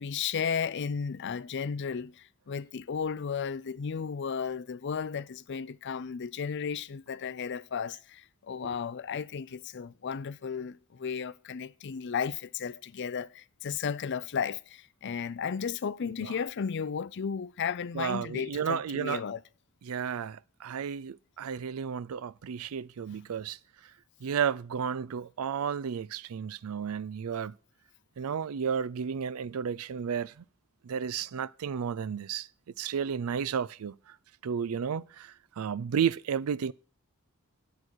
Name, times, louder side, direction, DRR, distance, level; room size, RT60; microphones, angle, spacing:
voice 1, 0.0-19.4 23.1-23.2, left 6 dB, 55° left, 0.5 m, -34 dB
voice 2, 17.9-19.2 19.9-23.6 24.2-27.5 28.2-30.3 30.8-32.5 32.8-33.9 34.4-35.3 35.6-36.7, right 7 dB, 90° right, 0.4 m, -32 dB
11.0 x 8.0 x 4.6 m
head